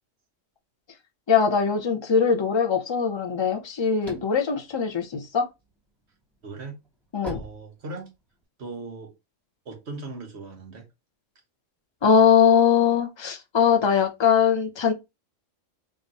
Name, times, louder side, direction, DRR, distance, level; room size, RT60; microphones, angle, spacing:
voice 1, 1.3-5.5 7.1-7.4 12.0-14.9, left 6 dB, 45° left, 0.3 m, -21 dB
sound 1, 3.5-5.7 6.2-8.4, right 1 dB, ahead, 1.0 m, -40 dB
voice 2, 6.4-6.8 7.3-8.1 8.6-9.1 9.6-10.9, right 3 dB, 55° right, 1.3 m, -38 dB
3.6 x 2.4 x 4.0 m
omnidirectional pair, 1.4 m